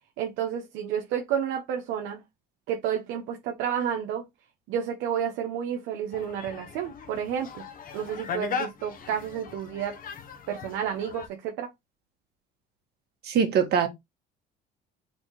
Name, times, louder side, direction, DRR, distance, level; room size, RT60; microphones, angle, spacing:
voice 1, 0.2-2.2 2.7-4.3 4.7-7.6 7.9-10.0 10.5-11.7, right 9 dB, 80° right, 0.9 m, -30 dB
sound 1, 6.1-11.3, left 6 dB, 50° left, 1.0 m, -38 dB
voice 2, 13.2-13.9, right 7 dB, 60° right, 1.7 m, -22 dB
4.2 x 2.7 x 4.5 m
cardioid pair, 105°, 19 cm